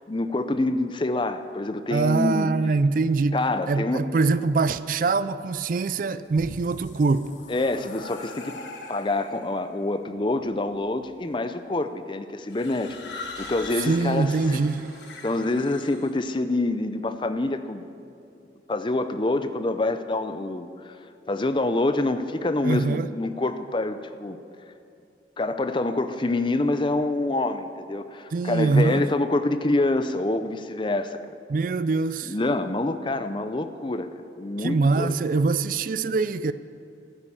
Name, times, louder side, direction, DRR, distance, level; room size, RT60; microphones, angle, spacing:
voice 1, 0.1-2.5 3.3-4.0 7.5-8.6 8.9-14.6 15.2-17.9 18.7-20.9 21.3-24.4 25.4-31.2 32.3-34.1 34.4-35.1, left 2 dB, 25° left, 0.5 m, -26 dB
voice 2, 1.9-3.4 3.7-7.3 13.9-14.8 22.6-23.1 28.3-29.0 31.5-32.3 34.6-36.5, right 3 dB, 50° right, 0.3 m, -23 dB
sound 1, 6.1-9.6 10.4-10.9 12.5-16.1, left 3 dB, 80° left, 1.5 m, -41 dB
sound 2, 13.4-16.4, right 2 dB, 65° right, 3.1 m, -49 dB
12.5 x 10.0 x 7.3 m
head